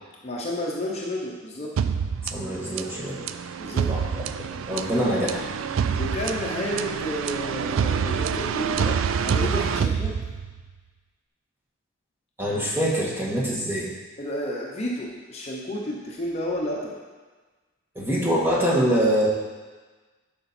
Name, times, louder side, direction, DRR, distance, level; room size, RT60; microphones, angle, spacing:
voice 1, 0.2-1.7 3.6-3.9 6.0-10.2 14.2-17.0, equal, 30° left, -2 dB, 0.9 m, -31 dB
sound 1, 1.8-10.7, right 6 dB, 70° right, 0.4 m, -27 dB
voice 2, 2.3-3.2 3.9-4.3 4.5-5.5 12.4-13.9 17.9-19.3, equal, 10° right, -5 dB, 1.5 m, -24 dB
11.0 x 5.2 x 4.3 m, 1.3 s
head